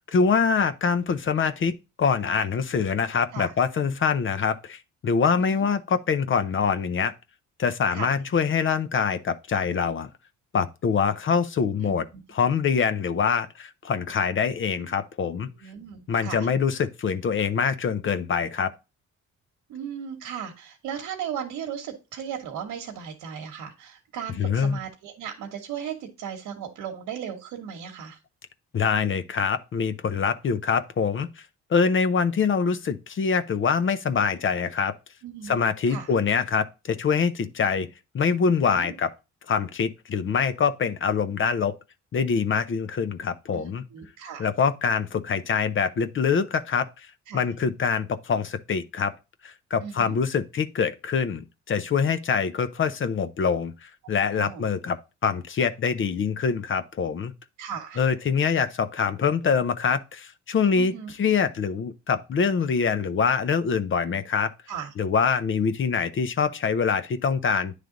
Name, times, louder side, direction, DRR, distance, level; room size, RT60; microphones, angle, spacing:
voice 1, 0.1-1.7 2.0-7.1 7.6-10.1 10.5-15.5 16.1-18.7 24.4-24.8 28.7-31.3 31.7-34.9 35.4-37.9 38.1-39.1 39.5-41.8 42.1-43.8 44.4-47.1 47.3-49.1 49.4-55.0 55.2-57.3 58.0-64.5 65.0-67.7, left 6 dB, 40° left, 0.6 m, -24 dB
voice 2, 11.8-12.2 15.5-16.5 19.7-28.2 35.2-35.6 35.9-36.1 38.7-38.9 43.5-44.5 47.3-47.4 49.8-50.1 54.2-54.6 57.6-58.0 60.7-61.1 64.7-64.9, right 8 dB, 90° right, 1.1 m, -36 dB
9.3 x 3.3 x 3.8 m
cardioid pair, 90°, 30 cm